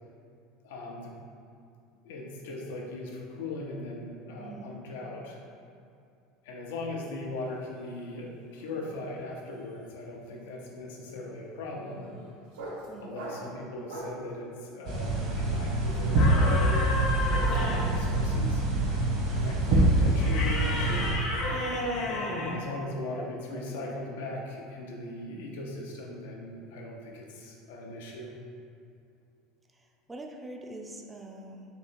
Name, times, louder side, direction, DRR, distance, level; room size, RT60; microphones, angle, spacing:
voice 1, 0.6-1.1 2.0-5.4 6.4-12.1 13.0-15.1 15.4-18.6 19.3-21.2 21.9-28.3, left 2 dB, 85° left, -1 dB, 0.7 m, -39 dB
voice 2, 4.4-4.8 12.9-13.2 19.6-20.0 22.6-22.8 23.2-23.3 23.5-23.6 30.1-31.7, right 2 dB, 15° right, 2 dB, 0.4 m, -44 dB
sound 1, 7.5-14.3, right 1 dB, 80° right, 0.8 m, -45 dB
sound 2, 14.8-21.1, right 1 dB, 60° right, 1.2 m, -25 dB
sound 3, 16.2-18.0 20.2-22.7, left 2 dB, 55° left, 0.9 m, -32 dB
3.7 x 2.8 x 4.4 m, 2.5 s
supercardioid pair, 115°, 0 cm